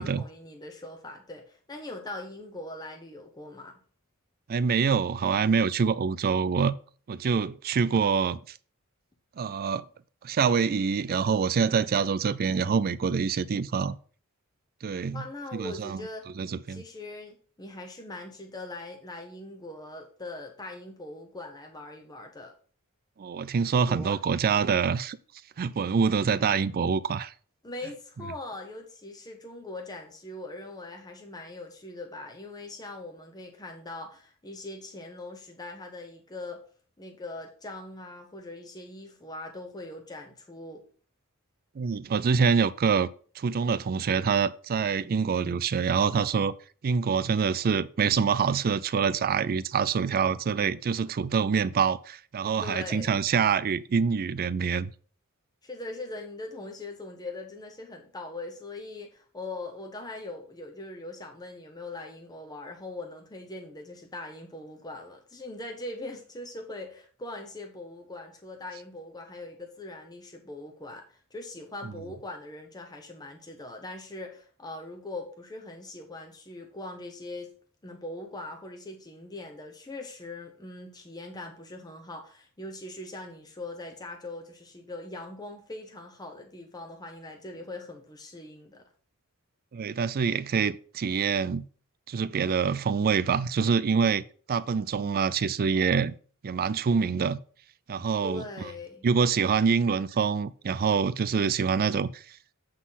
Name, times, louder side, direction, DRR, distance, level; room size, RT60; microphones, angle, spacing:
voice 1, 0.0-3.8 15.1-16.3 16.7-22.5 23.8-24.2 27.6-36.6 37.0-40.9 52.4-53.2 55.6-77.5 77.8-88.9 98.2-99.1, left 2 dB, 20° left, 0.8 m, -41 dB
voice 2, 4.5-6.8 7.1-8.4 9.4-9.8 10.2-13.9 14.8-15.3 15.5-16.0 16.4-16.8 23.2-25.2 25.6-27.3 41.8-43.1 43.4-46.5 46.8-54.9 71.8-71.9 89.7-91.7 92.1-96.1 96.4-97.4 97.9-98.7 99.0-102.4, right 6 dB, 40° right, 0.4 m, -26 dB
7.7 x 4.1 x 5.6 m
head